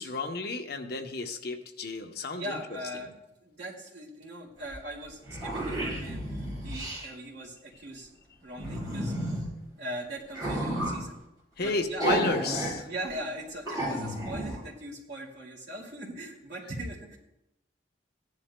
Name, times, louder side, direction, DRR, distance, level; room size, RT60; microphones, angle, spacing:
voice 1, 0.0-2.6 11.6-12.9, left 3 dB, 55° left, 5 dB, 0.8 m, -32 dB
voice 2, 2.3-3.1 3.4-8.1 8.4-9.1 9.8-11.2 11.6-12.1 12.9-17.2, right 1 dB, 60° right, -2 dB, 2.4 m, -40 dB
sound 1, 4.7-4.8 5.0-7.1 8.6-9.5 10.3-11.0 12.0-12.7 13.1-13.2 13.7-14.6, right 1 dB, 20° right, 4.2 m, -32 dB
16.0 x 10.5 x 2.2 m, 0.89 s
head